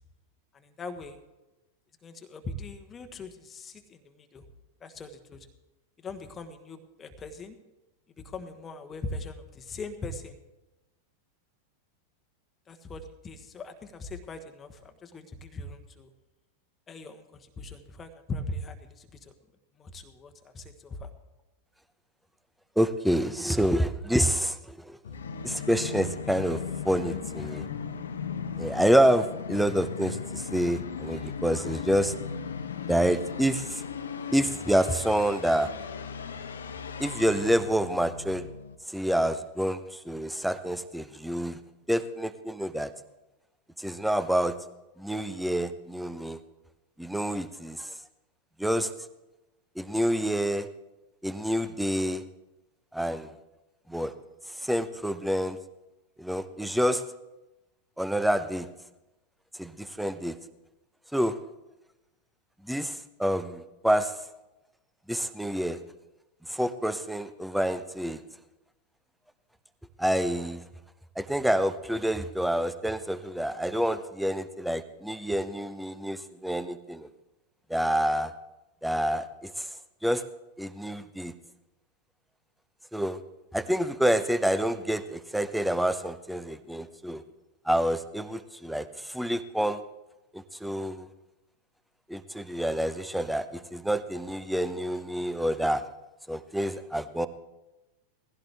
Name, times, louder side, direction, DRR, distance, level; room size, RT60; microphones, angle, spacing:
voice 1, 0.5-1.2 2.0-4.4 4.8-5.5 6.0-7.5 8.2-10.4 12.7-16.1 16.9-19.3 19.8-21.1, left 2 dB, 20° left, 7 dB, 1.3 m, -40 dB
voice 2, 22.8-25.0 25.4-27.7 28.6-32.1 32.9-33.8 34.3-35.7 37.0-38.5 38.9-41.6 41.9-42.9 43.8-44.5 45.0-46.4 47.0-47.9 48.6-48.9 49.8-50.7 51.2-52.2 52.9-53.3 53.9-54.1 54.6-55.6 56.2-57.0 58.0-58.7 59.6-60.3 61.1-61.4 62.6-64.1 65.1-65.8 66.5-68.2 70.0-70.6 71.2-77.1 77.7-78.3 78.8-79.7 80.0-80.2 80.6-81.3 82.9-83.2 83.5-87.2 87.7-89.8 90.3-91.1 92.1-95.8 96.3-97.3, equal, ahead, 12 dB, 0.8 m, -27 dB
Musical instrument, 25.0-38.7, left 6 dB, 65° left, 0.9 m, -37 dB
19.5 x 15.5 x 3.5 m, 1.0 s
figure-of-eight pair, 90°, 0 cm